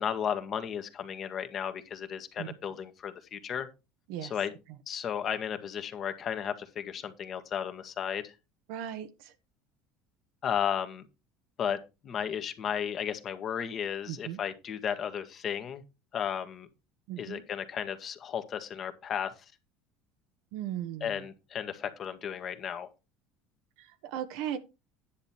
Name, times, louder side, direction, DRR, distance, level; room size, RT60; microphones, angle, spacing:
voice 1, 0.0-3.7 4.2-4.5 4.9-8.3 10.4-11.1 11.6-11.8 12.0-15.8 16.1-16.7 17.2-19.3 21.0-22.9, left 8 dB, 45° left, 1.7 m, -34 dB
voice 2, 8.7-9.1 14.1-14.4 17.1-17.4 20.5-21.2 24.0-24.6, right 11 dB, 70° right, 1.4 m, -36 dB
10.5 x 7.0 x 4.4 m
supercardioid pair, 90°, 0 cm